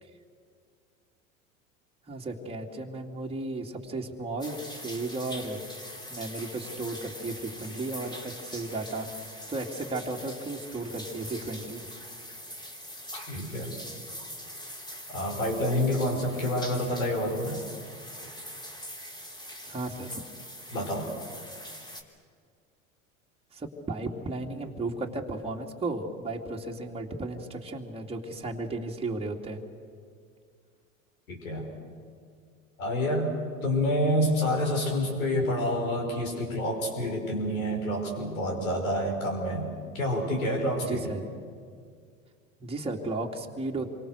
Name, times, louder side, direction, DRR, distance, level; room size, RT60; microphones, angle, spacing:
voice 1, 2.1-5.6 6.1-9.2 9.5-11.8 19.6-20.2 23.5-29.6 40.9-41.3 42.6-44.0, right 2 dB, 15° right, 0 dB, 2.7 m, -34 dB
sound 1, 4.4-22.0, equal, 10° left, 3.5 m, -43 dB
voice 2, 13.1-13.7 15.1-17.6 20.7-21.1 31.3-31.7 32.8-33.3 33.6-39.7 39.9-41.1, equal, 80° left, 1 dB, 6.0 m, -28 dB
28.5 x 24.5 x 6.6 m, 2.1 s
figure-of-eight pair, 80°, 41 cm